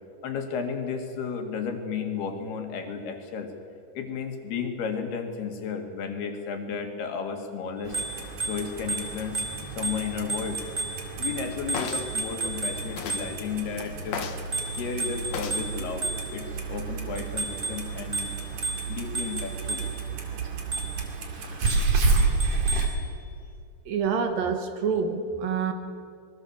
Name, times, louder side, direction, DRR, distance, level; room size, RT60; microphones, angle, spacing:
voice 1, 0.2-3.5 4.0-8.0 8.4-9.5 9.8-10.6 11.2-14.3 14.8-18.4 18.9-19.8, left 6 dB, 75° left, 4 dB, 4.1 m, -33 dB
Bicycle bell, 7.8-13.6 14.5-16.6 17.2-20.1 20.7-21.1 21.7-23.0, right 3 dB, 20° right, 2.3 m, -34 dB
Clock, 7.8-22.9, right 4 dB, 50° right, 3.4 m, -31 dB
sound 1, 11.7-12.1 13.0-13.3 14.1-14.5 15.3-15.7 16.4-16.6, left 7 dB, 60° left, 2.0 m, -34 dB
voice 2, 23.9-25.7, right 6 dB, 65° right, 6 dB, 3.0 m, -27 dB
25.0 x 21.5 x 7.3 m, 2.4 s
omnidirectional pair, 4.7 m